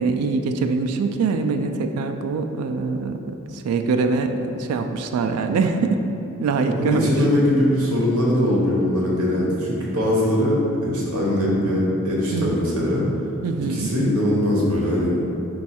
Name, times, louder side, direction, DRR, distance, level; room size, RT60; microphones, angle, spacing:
voice 1, 0.0-6.0 6.4-7.1 12.3-12.5 13.4-13.9, right 4 dB, 90° right, 7 dB, 0.3 m, -23 dB
voice 2, 6.7-13.0 13.7-15.2, left 1 dB, 70° right, -4 dB, 0.9 m, -21 dB
5.2 x 2.3 x 4.2 m, 2.8 s
head